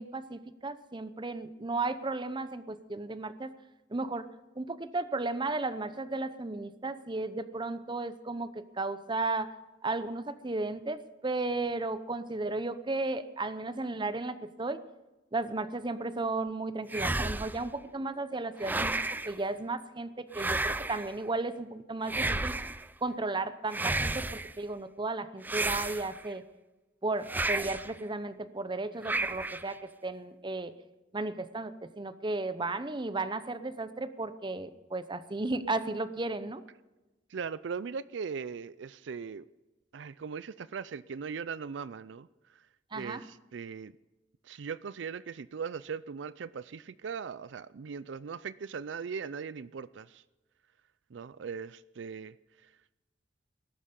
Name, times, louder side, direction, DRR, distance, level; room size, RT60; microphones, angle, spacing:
voice 1, 0.0-3.5 3.9-4.3 4.6-9.5 9.8-14.8 15.3-18.9 19.2-22.5 23.0-26.4 27.0-30.7 31.1-36.6 42.9-43.2, right 3 dB, 25° right, 0.8 m, -34 dB
sound 1, 16.9-17.7 18.6-19.4 20.3-21.1 22.1-22.9 23.7-24.5 25.4-26.3 27.3-27.9 29.0-29.7, right 2 dB, 10° right, 0.4 m, -32 dB
voice 2, 37.3-39.5 39.9-42.3 42.5-42.6 42.9-43.9 44.4-50.2 51.1-52.4 52.6-52.7, right 6 dB, 75° right, 0.4 m, -39 dB
19.0 x 11.0 x 5.3 m
head